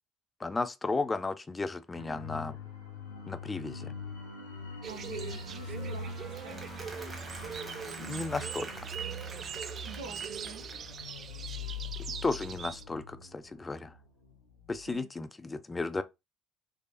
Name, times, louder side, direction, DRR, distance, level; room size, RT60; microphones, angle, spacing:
voice 1, 0.4-2.6 3.3-3.9 8.0-8.9 12.2-13.9 14.7-16.0, left 3 dB, 20° left, 0.4 m, -34 dB
sound 1, 1.9-14.3 14.6-14.8, left 3 dB, 80° left, 0.9 m, -43 dB
sound 2, 4.8-12.8, right 7 dB, 45° right, 0.3 m, -42 dB
voice 2, 4.9-6.1 6.4-6.8 9.8-10.6 14.9-15.1, right 6 dB, 75° right, 0.6 m, -46 dB
Applause, 6.2-11.2, right 3 dB, 25° right, 1.3 m, -47 dB
3.5 x 3.3 x 2.7 m
figure-of-eight pair, 55°, 0 cm